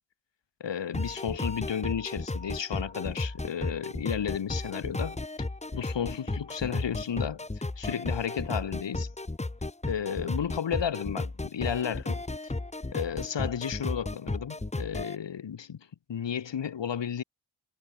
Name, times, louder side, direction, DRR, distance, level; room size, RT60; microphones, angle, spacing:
voice 1, 0.6-5.2 5.7-9.1 9.8-12.5 12.9-17.2, left 8 dB, 65° left, 5.1 m, -33 dB
sound 1, 0.9-15.2, left 2 dB, 15° left, 3.0 m, -34 dB
wide cardioid pair, 160°, 47 cm